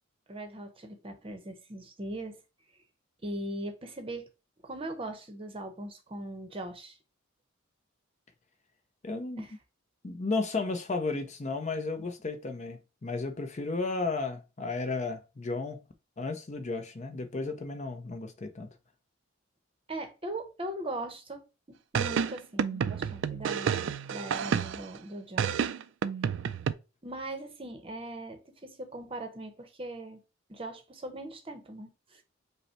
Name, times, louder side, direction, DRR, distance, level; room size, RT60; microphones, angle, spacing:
voice 1, 0.3-2.4 3.2-4.2 4.6-7.0 9.4-9.5 12.0-12.1 19.9-21.4 21.7-25.5 27.0-30.2 30.5-32.2, right 1 dB, 25° right, 0.8 m, -40 dB
voice 2, 9.0-9.4 10.0-15.8 16.2-18.7, left 3 dB, 35° left, 0.5 m, -33 dB
sound 1, 22.0-25.0 25.4-26.7, right 7 dB, 60° right, 0.3 m, -30 dB
5.3 x 2.1 x 4.2 m
head